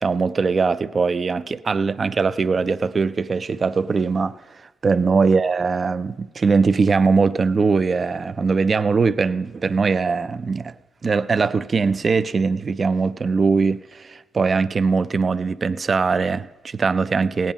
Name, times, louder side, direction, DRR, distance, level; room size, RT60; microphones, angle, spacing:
voice 1, 0.0-10.7 11.0-17.5, right 4 dB, 45° right, 0.4 m, -21 dB
17.0 x 9.2 x 5.3 m
supercardioid pair, 55°, 0 cm